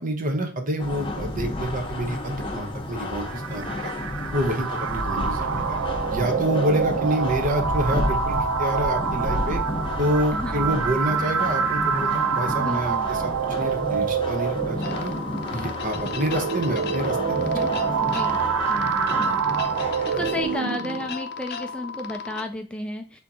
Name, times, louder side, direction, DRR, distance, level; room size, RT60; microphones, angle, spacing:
voice 1, 0.0-3.9 4.3-5.8 6.1-9.6 10.0-13.3 13.6-15.1 15.5-17.7 18.1-18.2 19.2-19.3, right 1 dB, 40° right, 5 dB, 0.9 m, -28 dB
sound 1, 0.8-20.6, left 1 dB, 25° left, 0.8 m, -32 dB
sound 2, 3.2-21.2, right 6 dB, 75° right, 0.4 m, -26 dB
voice 2, 10.3-11.0 12.6-13.1 17.5-17.7 18.0-23.2, left 1 dB, 5° left, 4 dB, 0.3 m, -34 dB
sound 3, 14.8-22.4, left 6 dB, 55° left, 0.6 m, -35 dB
4.4 x 3.6 x 2.7 m, 0.38 s
head